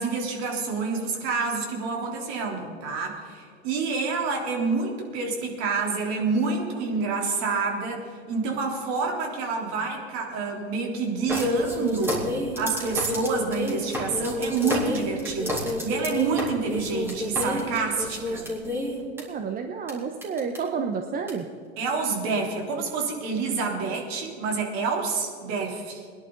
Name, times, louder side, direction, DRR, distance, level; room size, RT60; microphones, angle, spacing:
voice 1, 0.0-12.3 12.6-18.5 21.8-26.0, right 4 dB, 50° right, 1 dB, 3.7 m, -28 dB
sound 1, 11.3-19.2 19.9-20.0 20.2-20.6 21.3-21.4, left 1 dB, 5° right, 3.7 m, -30 dB
voice 2, 19.3-21.5, right 5 dB, 25° right, 5 dB, 1.0 m, -30 dB
21.5 x 11.0 x 4.0 m, 2.2 s
hypercardioid pair, 110°, 34 cm